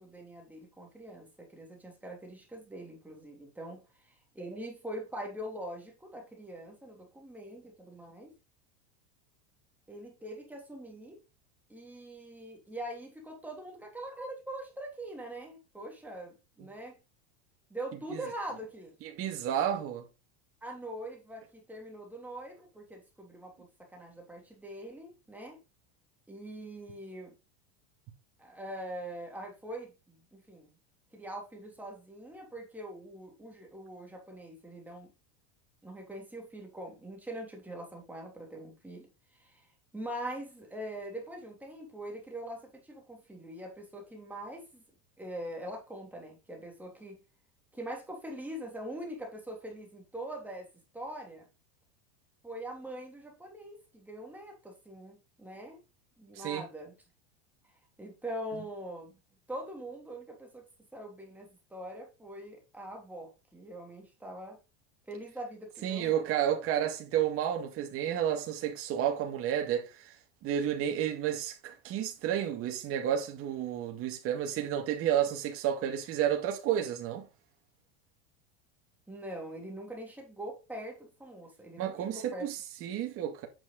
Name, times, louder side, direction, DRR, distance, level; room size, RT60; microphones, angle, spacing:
voice 1, 0.0-8.3 9.9-11.2 11.7-17.0 17.7-18.9 20.6-25.6 26.3-27.3 28.4-30.8 31.1-35.1 35.8-44.8 45.2-47.2 47.7-51.5 52.4-55.8 56.2-56.9 58.0-59.2 59.5-60.7 60.9-64.6 65.1-66.2 79.1-82.5, right 1 dB, 5° right, 3.2 m, -43 dB
voice 2, 19.0-20.0 56.4-56.7 65.8-69.9 70.4-77.3 81.8-83.5, right 10 dB, 40° right, 2.3 m, -31 dB
9.0 x 6.1 x 4.0 m
supercardioid pair, 135°, 34 cm